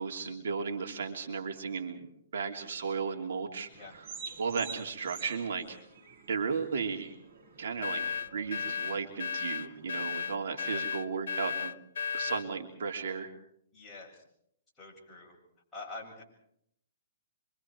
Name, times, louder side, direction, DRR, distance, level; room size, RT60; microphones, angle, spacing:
voice 1, 0.0-4.1 4.4-5.8 6.3-7.2 7.6-11.8 12.1-13.3, right 5 dB, 70° right, 3 dB, 3.1 m, -35 dB
sound 1, 3.7-10.3, right 5 dB, 45° right, 5.7 m, -49 dB
sound 2, 7.8-12.5, left 6 dB, 80° left, 0.8 m, -34 dB
voice 2, 13.7-14.2 14.8-15.4 15.7-16.2, left 3 dB, 5° left, -6 dB, 7.6 m, -46 dB
27.0 x 24.5 x 4.7 m, 0.71 s
hypercardioid pair, 155°, 0 cm